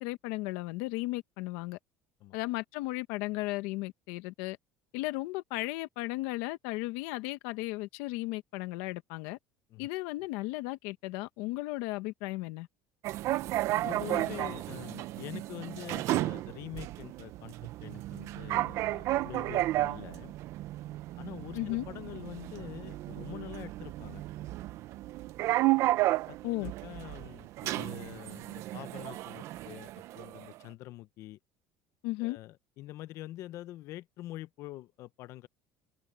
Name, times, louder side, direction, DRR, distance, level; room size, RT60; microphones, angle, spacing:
voice 1, 0.0-1.8 2.3-4.6 4.9-9.4 9.8-12.7 21.5-21.9 26.4-26.7 32.0-32.4, left 20 dB, 80° left, 1.1 m, -35 dB
sound 1, 13.0-30.6, right 16 dB, 55° right, 0.6 m, -33 dB
voice 2, 13.8-20.3 21.2-24.2 26.3-31.4 32.2-35.5, left 15 dB, 55° left, 0.8 m, -45 dB
cardioid pair, 145°, 6 cm